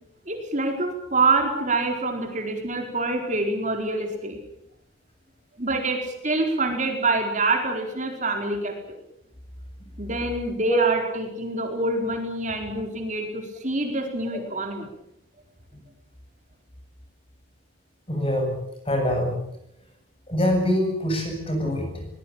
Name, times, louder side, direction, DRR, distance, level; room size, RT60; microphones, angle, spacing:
voice 1, 0.3-4.4 5.6-9.0 10.0-14.9, right 2 dB, 40° right, 3 dB, 4.5 m, -26 dB
voice 2, 18.1-18.5 18.8-19.4 20.3-22.1, equal, 30° left, 4 dB, 8.0 m, -24 dB
22.5 x 21.0 x 8.9 m, 0.78 s
head